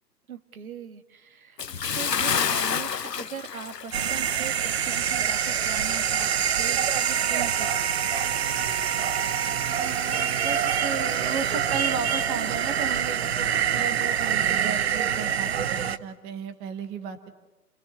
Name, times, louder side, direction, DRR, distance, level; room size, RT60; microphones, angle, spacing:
voice 1, 0.3-1.6 1.9-8.0, right 7 dB, 60° right, 11 dB, 1.7 m, -40 dB
Bathtub (filling or washing) / Splash splatter, 1.6-4.5 4.8-5.0 5.5-5.6, left 7 dB, 80° left, 1.2 m, -28 dB
sound 1, 3.9-16.0, right 8 dB, 40° right, 0.9 m, -25 dB
voice 2, 9.8-17.3, right 6 dB, 10° right, 8 dB, 0.9 m, -34 dB
29.0 x 19.0 x 9.7 m, 1.1 s
figure-of-eight pair, 140°, 48 cm